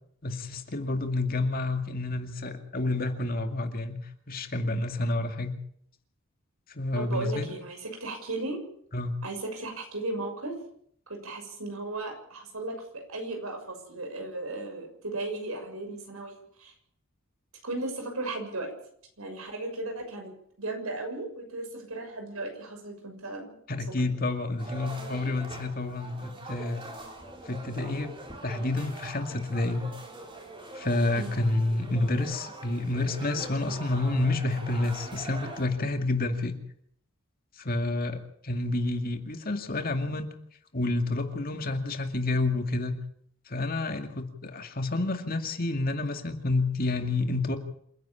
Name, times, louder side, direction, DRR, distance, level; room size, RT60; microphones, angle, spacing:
voice 1, 0.2-4.0 4.3-5.5 6.7-7.5 8.9-9.2 23.7-26.8 27.5-28.1 28.4-29.9 30.7-36.6 37.6-40.3 40.7-43.0 43.5-47.6, left 2 dB, 45° left, 6 dB, 2.3 m, -29 dB
voice 2, 6.9-8.6 9.2-10.5 11.1-16.7 17.6-18.7 19.2-20.3 20.6-23.5 24.0-24.1 31.1-31.3, right 2 dB, 85° right, 4 dB, 6.6 m, -36 dB
sound 1, 24.6-35.6, right 2 dB, 25° right, 4.3 m, -43 dB
27.5 x 11.0 x 8.6 m, 0.66 s
head